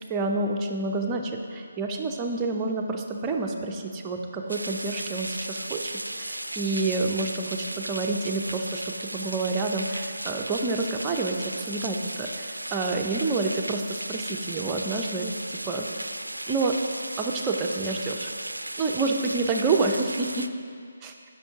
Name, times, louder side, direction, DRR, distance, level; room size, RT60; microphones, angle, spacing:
voice 1, 0.1-16.1 16.5-16.8 17.2-18.3 18.8-20.5 21.0-21.1, right 3 dB, 20° right, 2 dB, 0.5 m, -28 dB
sound 1, 4.5-20.5, right 1 dB, 90° right, 0.3 m, -35 dB
6.9 x 6.0 x 4.7 m, 2.2 s
figure-of-eight pair, 150°, 0 cm